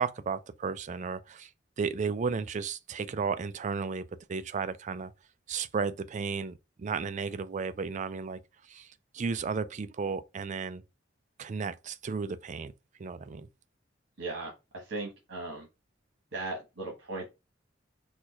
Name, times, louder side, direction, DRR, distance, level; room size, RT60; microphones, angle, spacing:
voice 1, 0.0-1.5 1.8-5.1 5.5-8.4 8.7-10.8 11.4-12.7 13.0-13.5, right 5 dB, 40° right, 0.4 m, -34 dB
voice 2, 14.2-15.7 16.3-17.3, right 2 dB, 80° right, 1.3 m, -37 dB
4.4 x 2.3 x 4.5 m
head